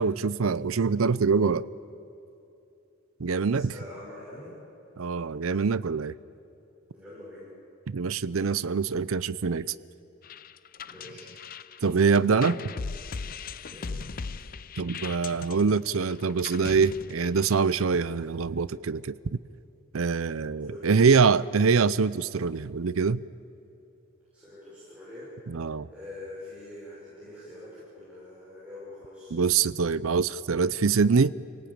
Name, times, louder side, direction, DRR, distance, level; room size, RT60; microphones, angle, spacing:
voice 1, 0.0-1.7 3.2-3.7 5.0-6.1 7.9-9.7 11.8-12.6 14.8-19.4 19.9-23.2 25.5-25.9 29.3-31.3, right 5 dB, 80° right, 17 dB, 0.6 m, -24 dB
voice 2, 3.5-4.5 6.9-7.5 10.8-11.3 13.7-13.9 20.6-21.4 24.3-25.6 25.9-29.4, left 1 dB, 5° right, -9 dB, 6.7 m, -44 dB
sound 1, 10.2-17.7, left 5 dB, 45° left, 0.5 m, -39 dB
29.0 x 18.5 x 8.8 m, 2.8 s
head